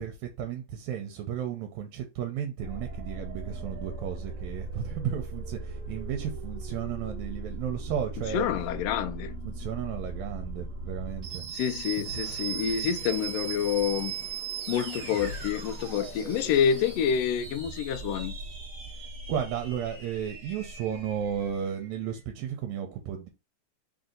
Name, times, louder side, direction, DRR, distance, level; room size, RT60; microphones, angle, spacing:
voice 1, 0.0-8.5 9.5-11.4 12.0-12.1 18.9-23.3, right 9 dB, 80° right, 1.9 m, -34 dB
sound 1, 2.6-21.9, right 4 dB, 40° right, 1.3 m, -38 dB
voice 2, 8.3-9.4 11.5-14.1 14.7-18.3, left 8 dB, 80° left, 1.4 m, -28 dB
sound 2, 12.1-18.2, left 3 dB, 50° left, 1.2 m, -48 dB
4.6 x 2.6 x 3.8 m
omnidirectional pair, 3.3 m